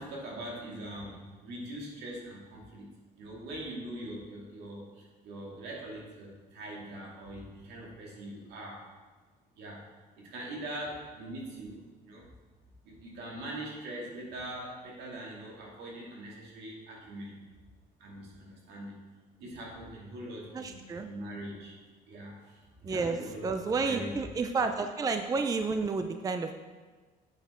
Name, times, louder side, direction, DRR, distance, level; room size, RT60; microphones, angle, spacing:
voice 1, 0.0-8.9 9.6-12.3 12.8-17.4 18.0-19.0 19.4-21.8 22.1-24.2, right 1 dB, 80° right, -2 dB, 2.3 m, -42 dB
voice 2, 20.5-21.1 22.8-26.6, right 4 dB, 20° right, 7 dB, 0.4 m, -31 dB
8.2 x 6.7 x 4.3 m, 1.4 s
cardioid pair, 110°, 17 cm